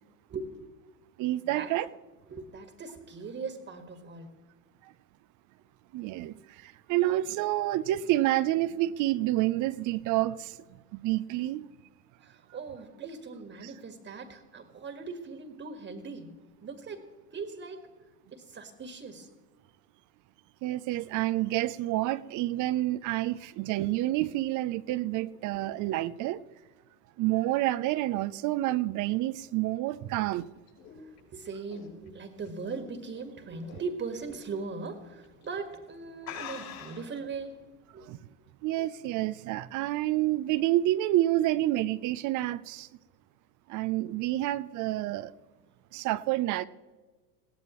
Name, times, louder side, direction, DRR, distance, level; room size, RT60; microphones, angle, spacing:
voice 1, 0.3-0.6 1.4-1.7 2.3-4.3 12.2-16.3 16.6-17.1 17.3-17.9 18.3-19.3 31.0-38.1, right 4 dB, 25° right, 1.7 m, -40 dB
voice 2, 1.2-1.9 5.9-11.7 20.6-26.4 27.2-30.5 38.0-38.2 38.6-42.9 43.7-45.3 45.9-46.7, right 15 dB, 40° right, 0.6 m, -28 dB
sound 1, 30.1-33.2 33.6-33.9 34.3-34.4 35.2-35.5 35.8-35.9 36.2-37.2, left 8 dB, 80° left, 5.9 m, -44 dB
21.0 x 17.0 x 3.1 m
hypercardioid pair, 90°, 46 cm